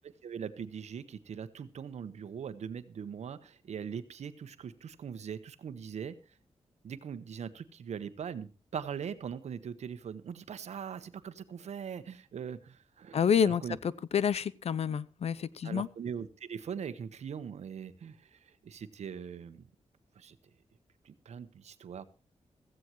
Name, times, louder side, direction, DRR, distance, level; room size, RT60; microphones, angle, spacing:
voice 1, 0.0-6.4 6.8-13.8 15.6-19.6 20.1-20.4 21.0-22.1, right 7 dB, 85° right, 12 dB, 1.2 m, -41 dB
voice 2, 13.1-13.6 14.1-15.9, left 7 dB, 65° left, 20 dB, 0.7 m, -28 dB
16.0 x 15.0 x 3.1 m, 0.30 s
wide cardioid pair, 120°, 11 cm